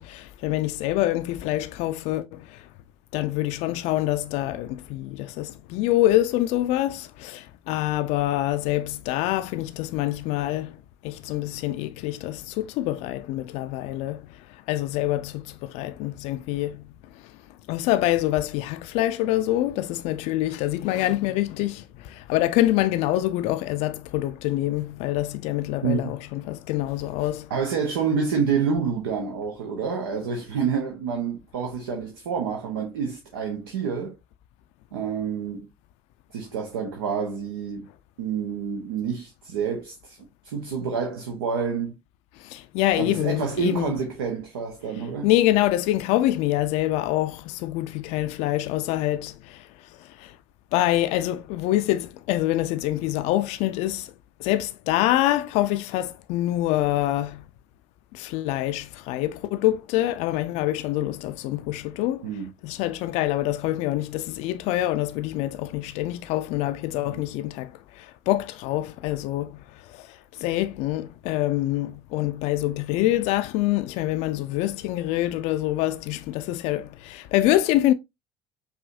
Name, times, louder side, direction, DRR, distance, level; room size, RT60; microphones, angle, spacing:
voice 1, 0.0-2.7 3.1-17.4 17.7-27.5 42.4-43.9 45.2-50.4 50.7-54.1 54.4-57.5 58.1-62.3 62.6-77.9, left 15 dB, 65° left, 0.4 m, -26 dB
voice 2, 27.5-34.2 34.9-35.7 36.3-37.9 38.2-40.2 40.4-42.0 43.0-45.3 62.2-62.5 67.1-67.2, right 6 dB, 80° right, 0.7 m, -28 dB
4.9 x 2.6 x 2.5 m
hypercardioid pair, 60°, 12 cm